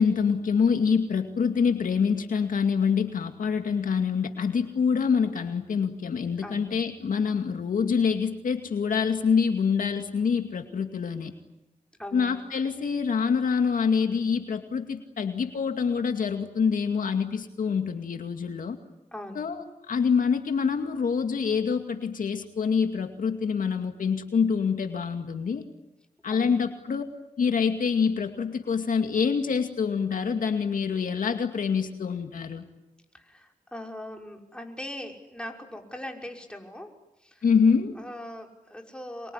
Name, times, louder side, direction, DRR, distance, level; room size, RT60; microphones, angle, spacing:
voice 1, 0.0-11.3 12.1-18.8 19.4-25.6 26.2-27.0 27.4-32.6 37.4-37.9, left 6 dB, 80° left, 6 dB, 2.3 m, -26 dB
voice 2, 6.4-6.8 12.0-12.5 19.1-19.5 26.2-26.6 33.1-36.9 37.2-37.5 37.9-39.3, left 1 dB, 5° left, 2 dB, 5.8 m, -40 dB
26.5 x 23.0 x 9.8 m, 0.93 s
cardioid pair, 60°, 14 cm